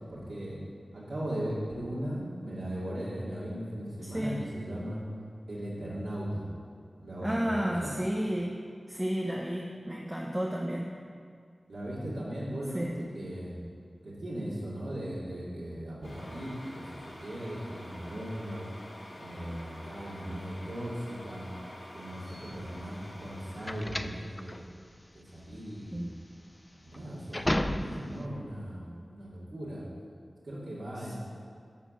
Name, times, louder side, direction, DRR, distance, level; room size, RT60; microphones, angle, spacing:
voice 1, 0.1-0.6 0.9-5.0 5.5-6.5 7.0-7.9 11.7-13.6 14.0-18.7 19.1-21.5 21.9-24.7 25.1-26.1 26.8-29.8 30.4-31.2, equal, 80° right, -8 dB, 2.5 m, -38 dB
voice 2, 4.0-4.4 7.2-8.6 8.9-10.9 12.7-13.0 25.9-26.1 31.0-31.1, equal, 10° right, -2 dB, 0.9 m, -32 dB
sound 1, 16.0-23.8, left 1 dB, 65° left, 3.0 m, -47 dB
sound 2, 22.3-28.2, left 1 dB, 20° left, 0.5 m, -34 dB
11.0 x 5.0 x 7.7 m, 2.2 s
wide cardioid pair, 80°, 0 cm